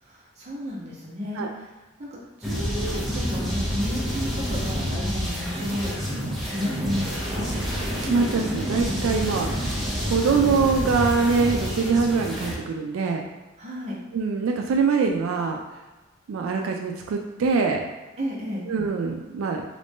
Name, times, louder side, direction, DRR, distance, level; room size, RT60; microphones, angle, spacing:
voice 1, 0.0-1.7 2.0-2.1 2.4-7.5 13.6-14.0 18.2-18.6, equal, 35° right, -6 dB, 0.9 m, -33 dB
sound 1, 2.4-12.6, equal, ahead, 0.6 m, -28 dB
voice 2, 8.0-9.5 10.1-13.3 14.1-15.6 16.3-17.9 18.7-19.6, right 5 dB, 90° right, 3 dB, 0.3 m, -23 dB
3.1 x 2.6 x 3.5 m, 1.1 s
head